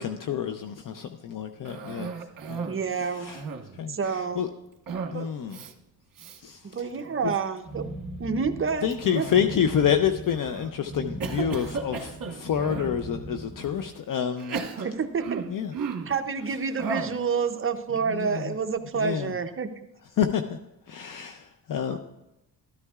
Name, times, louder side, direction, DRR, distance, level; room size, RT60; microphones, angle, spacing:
voice 1, 0.0-3.4 3.7-4.5 5.1-5.6 6.4-6.9 7.2-7.3 8.8-14.9 15.5-15.7 18.1-18.5 18.9-19.4 20.2-20.6 20.9-22.0, left 8 dB, 60° left, 7 dB, 0.6 m, -28 dB
Cough, 1.7-2.8 3.2-3.8 4.9-5.2 5.5-5.7 6.2-6.4 6.9-7.4 8.9-9.7 10.3-10.7 11.2-13.0 13.6-13.7 14.4-16.2 16.8-17.2, right 5 dB, 60° right, 1.2 m, -35 dB
voice 2, 2.7-3.3 3.9-4.4 5.1-5.3 6.6-7.8 8.2-9.3 14.8-15.4 16.1-19.7 21.9-22.0, right 5 dB, 35° right, 7 dB, 0.6 m, -28 dB
sound 1, 7.6-13.9, right 2 dB, 5° right, 2.6 m, -39 dB
13.0 x 12.5 x 2.4 m, 0.92 s
wide cardioid pair, 155°, 37 cm